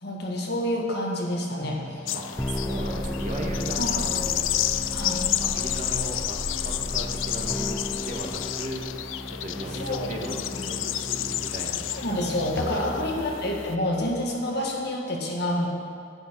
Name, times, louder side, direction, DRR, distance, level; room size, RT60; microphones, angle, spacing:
voice 1, 0.0-2.0 3.8-3.9 4.9-5.3 9.8-10.1 10.5-10.6 12.0-15.7, left 1 dB, 60° left, -1 dB, 1.6 m, -28 dB
sound 1, 1.6-14.9, left 1 dB, 5° left, 0.4 m, -35 dB
sound 2, 2.1-13.7, left 13 dB, 85° left, 0.4 m, -31 dB
voice 2, 2.1-5.0 5.4-6.4 6.6-9.0 9.3-11.9 12.7-13.1, right 1 dB, 40° right, 0 dB, 1.3 m, -37 dB
11.0 x 10.0 x 4.5 m, 2.3 s
head